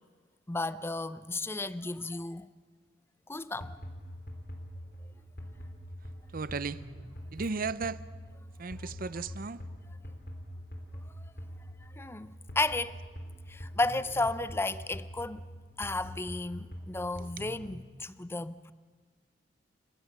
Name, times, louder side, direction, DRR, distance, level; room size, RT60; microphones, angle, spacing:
voice 1, 0.5-2.5 3.3-3.8 12.0-13.0 13.5-15.4 15.8-18.7, left 2 dB, 15° left, 0.5 m, -33 dB
sound 1, 3.6-17.8, equal, 60° left, 3.4 m, -44 dB
voice 2, 6.3-6.8 7.3-8.0 8.6-9.6 17.2-17.4, right 4 dB, 50° right, 0.6 m, -35 dB
29.0 x 15.0 x 7.3 m
head